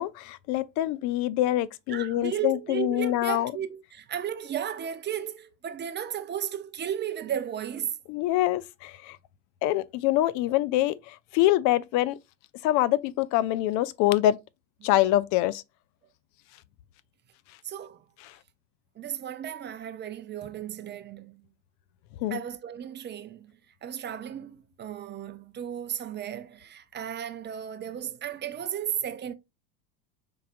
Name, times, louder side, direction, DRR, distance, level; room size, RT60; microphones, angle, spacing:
voice 1, 0.0-3.5 8.1-9.2 9.6-12.2 12.6-14.4 14.8-15.6 22.2-22.4, left 14 dB, 40° left, 0.4 m, -25 dB
voice 2, 1.9-8.0 14.8-14.9 17.6-18.0 19.0-21.5 22.3-23.5 23.8-29.3, right 9 dB, 20° right, 0.6 m, -34 dB
5.6 x 3.7 x 2.5 m
hypercardioid pair, 85°, 50 cm